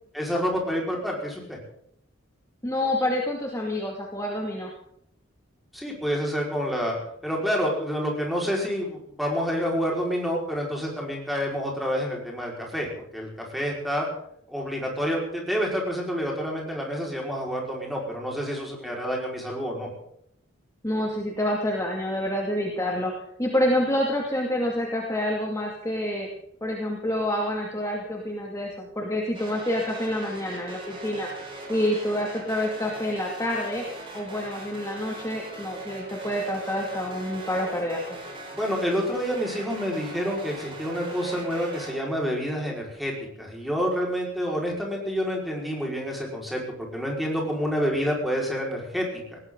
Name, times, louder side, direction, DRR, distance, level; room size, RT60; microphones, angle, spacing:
voice 1, 0.1-1.6 5.7-12.9 13.1-14.1 14.5-19.9 38.5-43.1 43.4-49.4, equal, ahead, -2 dB, 5.1 m, -28 dB
voice 2, 2.6-4.7 20.8-23.1 23.4-26.3 26.6-31.3 31.7-33.8 34.1-38.2, left 1 dB, 15° left, -1 dB, 2.5 m, -27 dB
sound 1, 29.3-41.9, right 2 dB, 25° right, 5.2 m, -40 dB
20.0 x 17.5 x 4.0 m, 0.72 s
head